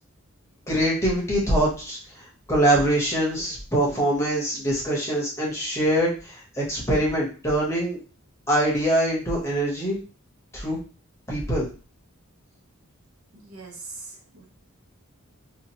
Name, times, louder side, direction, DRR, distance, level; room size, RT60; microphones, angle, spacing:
voice 1, 0.7-2.0 2.5-8.0 8.5-10.0 10.5-10.8 11.3-11.7, right 1 dB, 15° left, -4 dB, 0.9 m, -23 dB
voice 2, 13.3-14.5, right 3 dB, 80° right, 1 dB, 0.9 m, -41 dB
2.8 x 2.4 x 2.8 m, 0.36 s
head